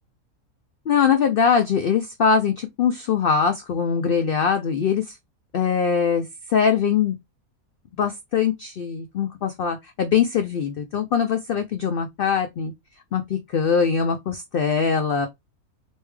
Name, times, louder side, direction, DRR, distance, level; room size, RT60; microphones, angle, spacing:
voice 1, 0.9-5.2 5.5-7.1 8.0-12.7 13.1-15.3, left 6 dB, 90° left, 0.4 m, -22 dB
3.3 x 2.7 x 3.1 m
omnidirectional pair, 1.5 m